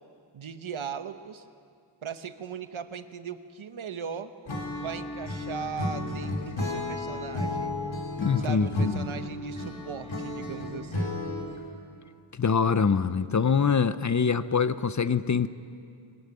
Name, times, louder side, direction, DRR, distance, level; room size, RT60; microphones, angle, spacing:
voice 1, 0.3-1.5 2.0-4.3 4.8-7.7 8.4-11.1, right 7 dB, 85° right, 10 dB, 1.1 m, -38 dB
Acoustic guitar / Strum, 4.5-11.7, left 1 dB, 75° left, 3.4 m, -33 dB
voice 2, 8.2-9.0 12.3-15.5, left 6 dB, 40° left, 14 dB, 0.6 m, -24 dB
21.5 x 18.0 x 9.6 m, 2.4 s
wide cardioid pair, 95°, 47 cm